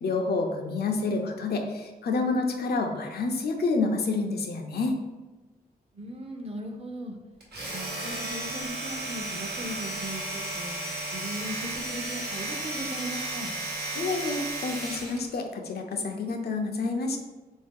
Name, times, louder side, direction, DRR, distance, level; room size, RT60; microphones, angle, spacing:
voice 1, 0.0-5.0 13.9-17.2, left 3 dB, 80° left, 3 dB, 0.5 m, -28 dB
voice 2, 5.9-7.2 7.7-10.7 11.1-13.5, right 1 dB, 40° right, 3 dB, 0.6 m, -38 dB
Domestic sounds home sounds, 7.4-15.3, right 2 dB, 90° right, 0.9 m, -34 dB
3.6 x 2.7 x 3.6 m, 1.2 s
cardioid pair, 75°, 16 cm